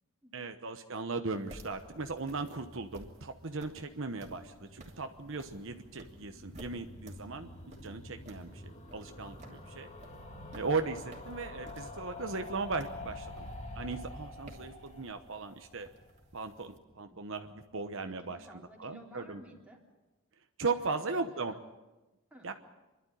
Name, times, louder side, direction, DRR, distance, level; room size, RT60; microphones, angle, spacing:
voice 1, 0.3-4.4 4.7-7.5 7.8-9.4 9.8-9.9 10.6-13.5 13.7-15.9 16.3-18.4 18.8-19.4 20.6-21.6 22.4-22.5, right 4 dB, 60° right, 6 dB, 1.0 m, -37 dB
step sound, 1.3-16.8, right 1 dB, 30° right, 2.9 m, -55 dB
sound 1, 4.0-17.0 17.2-17.3 17.5-17.6 17.8-17.9, left 2 dB, 30° left, 2.4 m, -48 dB
voice 2, 4.0-4.6 9.4-9.9 17.1-17.2 18.0-19.8 20.7-21.6 22.3-22.5, equal, 5° right, -1 dB, 3.4 m, -56 dB
27.5 x 12.0 x 9.9 m, 1.1 s
head